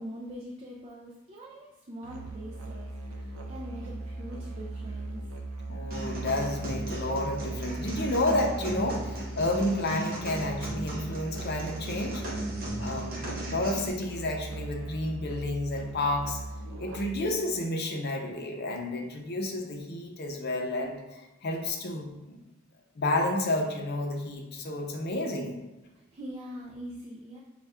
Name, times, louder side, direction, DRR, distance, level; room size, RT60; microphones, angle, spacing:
voice 1, 0.0-5.2 25.9-27.4, equal, 30° right, -2 dB, 0.4 m, -43 dB
Musical instrument, 2.0-17.3, right 2 dB, 75° right, 0.6 m, -39 dB
voice 2, 5.7-12.2 12.8-16.4 16.8-22.4 23.0-25.5, left 1 dB, 50° left, 2 dB, 0.6 m, -31 dB
sound 1, 5.9-13.9, right 1 dB, 45° right, 0.7 m, -37 dB
5.3 x 2.3 x 3.4 m, 1.1 s
head